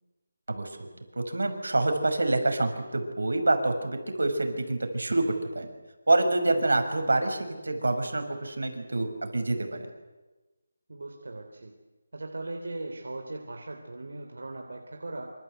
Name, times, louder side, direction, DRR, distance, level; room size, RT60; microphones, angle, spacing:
voice 1, 1.2-5.3 5.5-5.7 6.1-9.9, right 2 dB, 85° right, 6 dB, 6.0 m, -26 dB
voice 2, 10.9-11.7 12.1-15.3, right 2 dB, 65° right, 3 dB, 3.7 m, -39 dB
26.5 x 25.5 x 8.1 m, 1.2 s
figure-of-eight pair, 180°, 0 cm